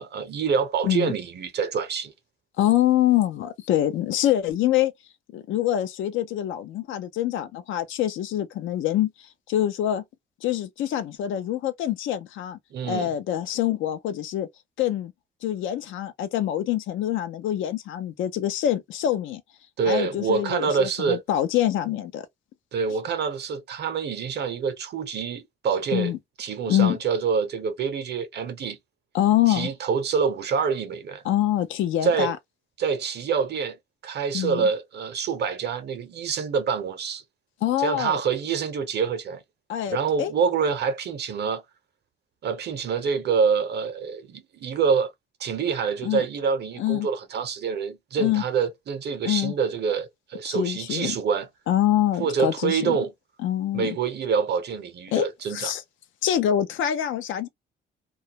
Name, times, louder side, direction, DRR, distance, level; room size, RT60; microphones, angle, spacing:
voice 1, 0.0-2.1 12.7-13.1 19.8-21.2 22.7-26.1 26.4-28.8 29.5-31.2 32.0-32.3 32.8-33.8 34.0-37.2 37.8-39.4 39.9-41.6 42.4-45.1 45.4-51.5 52.2-53.1 53.7-55.7, right 6 dB, 60° right, 0.7 m, -26 dB
voice 2, 2.6-4.9 5.3-9.1 9.5-10.0 10.4-12.6 12.9-14.5 14.8-15.1 15.4-19.4 19.9-22.2 25.9-26.2 26.7-27.0 29.1-29.7 31.2-32.4 34.3-34.7 37.6-38.2 39.7-40.3 46.0-46.2 46.8-47.1 48.2-48.4 49.2-49.5 50.5-51.2 51.7-53.0 53.4-53.9 55.1-55.8 56.2-57.5, left 12 dB, 80° left, 0.5 m, -25 dB
2.3 x 2.0 x 2.8 m
cardioid pair, 90°, 20 cm